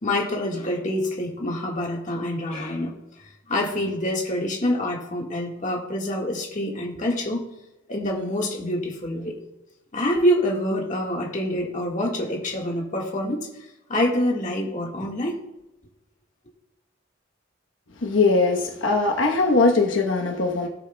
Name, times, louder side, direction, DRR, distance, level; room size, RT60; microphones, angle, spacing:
voice 1, 0.0-2.9 3.5-7.4 7.9-9.4 9.9-13.5 13.9-15.4, left 1 dB, 40° left, -2 dB, 1.7 m, -26 dB
voice 2, 18.0-20.7, left 3 dB, 75° left, 2 dB, 1.0 m, -20 dB
17.0 x 7.9 x 2.3 m, 0.96 s
head